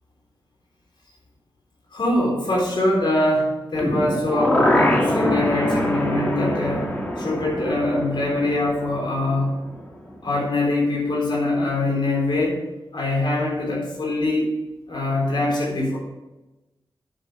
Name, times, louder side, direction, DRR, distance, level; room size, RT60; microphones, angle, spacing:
voice 1, 1.9-9.5 10.2-12.6 12.9-14.5 14.9-16.0, left 2 dB, 65° left, -3 dB, 3.8 m, -23 dB
sound 1, 3.7-9.8 10.1-10.2, left 1 dB, 15° left, 2.4 m, -24 dB
9.2 x 8.9 x 5.3 m, 1.0 s
wide cardioid pair, 95°, 9 cm